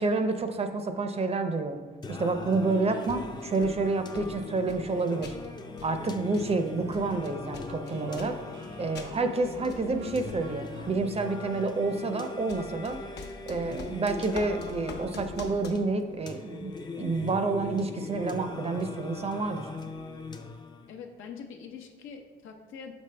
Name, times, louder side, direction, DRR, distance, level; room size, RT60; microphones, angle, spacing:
voice 1, 0.0-1.8 2.1-5.3 5.8-13.1 13.5-19.7, right 3 dB, 30° right, 7 dB, 0.6 m, -29 dB
Singing, 2.0-21.0, left 3 dB, 20° left, 0.5 m, -40 dB
sound 1, 3.1-3.9 4.2-5.5 5.8-8.6 8.9-9.2 9.5-10.5 12.2-15.7, left 4 dB, 55° left, 0.9 m, -44 dB
sound 2, 7.7-12.7, equal, 85° right, 1.8 m, -50 dB
voice 2, 20.9-22.9, left 6 dB, 85° left, 3 dB, 0.8 m, -44 dB
6.1 x 5.2 x 3.3 m, 1.5 s
cardioid pair, 90°, 20 cm